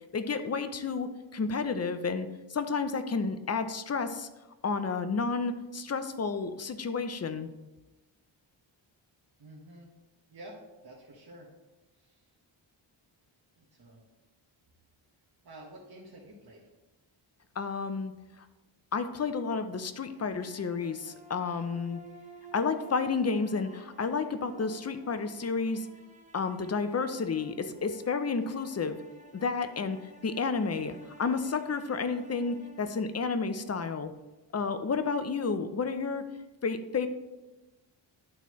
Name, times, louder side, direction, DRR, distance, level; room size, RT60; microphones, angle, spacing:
voice 1, 0.1-4.3 4.6-7.5 17.6-18.1 18.9-22.0 22.5-25.9 26.3-29.0 29.3-30.0 30.2-34.1 34.5-36.2 36.6-37.1, left 4 dB, 35° left, 10 dB, 0.6 m, -31 dB
voice 2, 9.4-9.9 10.3-10.6 10.8-11.5 11.9-12.3 13.6-14.0 15.4-16.6, right 1 dB, 50° right, -4 dB, 1.5 m, -50 dB
sound 1, 19.9-34.0, right 1 dB, 15° right, 1.0 m, -53 dB
11.5 x 4.2 x 3.1 m, 1.1 s
cardioid pair, 80°, 48 cm